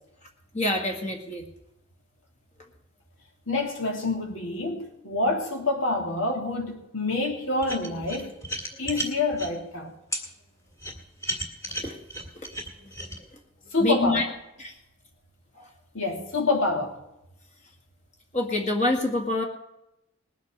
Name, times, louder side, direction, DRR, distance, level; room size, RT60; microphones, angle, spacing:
voice 1, 0.5-1.4 11.8-12.0 13.8-14.3 14.6-14.7 18.3-19.4, left 2 dB, 35° left, 1.9 m, -26 dB
voice 2, 3.5-8.3 8.8-9.9 13.7-14.3 15.9-16.9, left 2 dB, 80° left, 2.8 m, -27 dB
sound 1, 7.6-9.5 10.1-10.2 10.8-13.2, right 1 dB, 15° left, 2.0 m, -33 dB
20.0 x 8.4 x 6.1 m
head